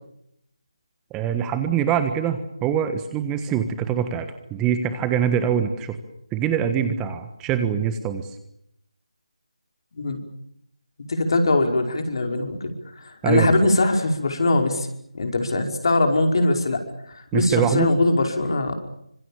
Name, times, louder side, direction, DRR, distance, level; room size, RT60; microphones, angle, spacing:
voice 1, 1.1-6.0 6.3-8.3 13.2-13.6 17.3-17.9, right 8 dB, 10° right, 9 dB, 1.4 m, -24 dB
voice 2, 11.1-14.9 15.1-16.8 17.1-18.7, left 2 dB, 50° left, 4 dB, 5.2 m, -21 dB
26.0 x 26.0 x 7.2 m, 0.75 s
figure-of-eight pair, 160°, 3 cm